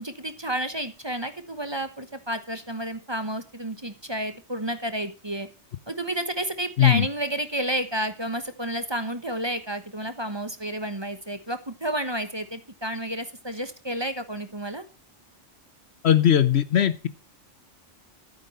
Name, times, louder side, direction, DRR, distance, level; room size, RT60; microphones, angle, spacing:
voice 1, 0.0-5.5 5.9-14.8, right 1 dB, 25° right, 10 dB, 1.1 m, -31 dB
voice 2, 16.0-17.1, left 10 dB, 65° left, 15 dB, 1.0 m, -19 dB
12.5 x 9.1 x 5.3 m, 0.33 s
omnidirectional pair, 1.2 m